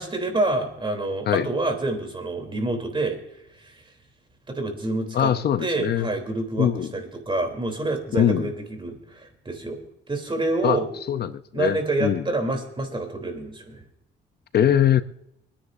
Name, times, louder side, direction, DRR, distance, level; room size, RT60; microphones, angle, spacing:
voice 1, 0.0-3.9 4.5-5.3 5.6-9.8 10.1-10.9 11.5-13.8, right 2 dB, 25° right, 4 dB, 3.2 m, -27 dB
voice 2, 5.1-6.1 6.6-6.9 8.1-8.5 10.6-10.8 11.1-12.2 14.5-15.0, left 10 dB, 55° left, 12 dB, 0.7 m, -22 dB
25.5 x 10.0 x 2.6 m, 0.82 s
cardioid pair, 90°, 20 cm